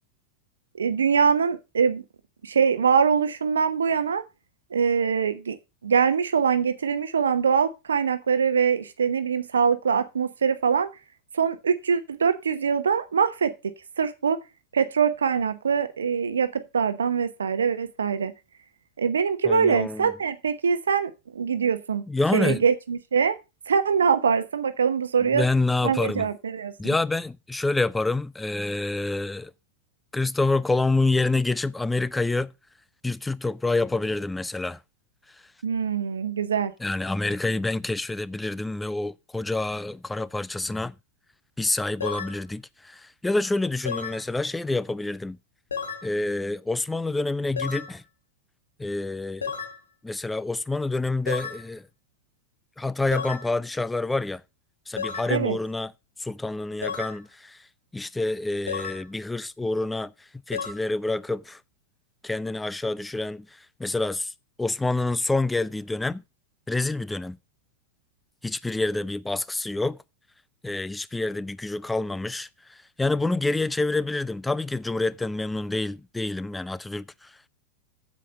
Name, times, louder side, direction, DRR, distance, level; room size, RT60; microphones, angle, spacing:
voice 1, 0.8-2.0 2.4-4.2 4.7-5.6 5.8-10.9 11.3-13.5 14.0-14.4 14.7-18.3 19.0-22.0 22.3-23.4 23.7-25.5 25.8-26.7 35.6-36.7 55.3-55.6, right 6 dB, 70° right, 0.9 m, -23 dB
voice 2, 19.4-20.1 22.1-22.6 25.3-26.3 26.8-29.5 30.1-32.5 33.0-34.8 36.8-40.9 41.6-45.4 46.0-48.0 48.8-49.5 50.0-51.9 52.8-54.4 54.9-55.9 56.2-57.6 57.9-60.1 60.5-61.6 62.2-64.3 64.6-66.2 66.7-67.4 68.4-70.0 70.6-77.5, left 2 dB, 5° left, 0.5 m, -27 dB
sound 1, 42.0-42.4 43.9-44.2 45.7-46.1 47.6-47.9 49.4-49.8 51.3-51.6 53.1-53.5 55.0-55.3 56.8-57.2 58.7-59.0 60.5-60.7, left 6 dB, 70° left, 1.9 m, -32 dB
8.5 x 7.4 x 5.4 m
figure-of-eight pair, 90°, 0 cm